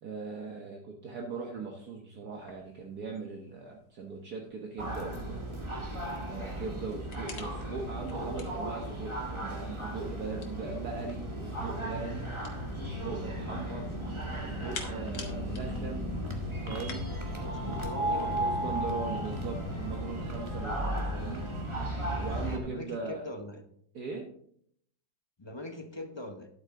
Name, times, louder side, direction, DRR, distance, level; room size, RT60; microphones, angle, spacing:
voice 1, 0.0-5.4 6.3-12.3 12.8-13.9 14.4-16.1 16.6-17.1 17.6-21.4 22.2-23.2 23.9-24.3, right 4 dB, 60° right, 1 dB, 1.6 m, -40 dB
sound 1, 2.4-17.0, left 5 dB, 75° left, 2.1 m, -51 dB
sound 2, 4.8-22.6, right 1 dB, 15° right, 1.7 m, -35 dB
voice 2, 17.4-18.6 22.6-23.6 25.4-26.5, left 2 dB, 35° left, 6 dB, 0.4 m, -41 dB
11.0 x 8.6 x 3.7 m, 0.66 s
omnidirectional pair, 2.0 m